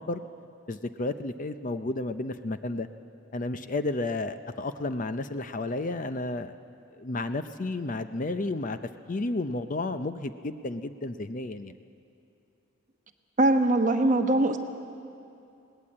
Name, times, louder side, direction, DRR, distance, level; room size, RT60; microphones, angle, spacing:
voice 1, 0.7-2.9 3.3-6.6 7.0-8.8 9.1-11.7, left 2 dB, 35° left, 10 dB, 0.5 m, -32 dB
voice 2, 13.4-14.6, right 2 dB, 35° right, 6 dB, 1.1 m, -22 dB
21.0 x 18.0 x 8.7 m, 2.6 s
head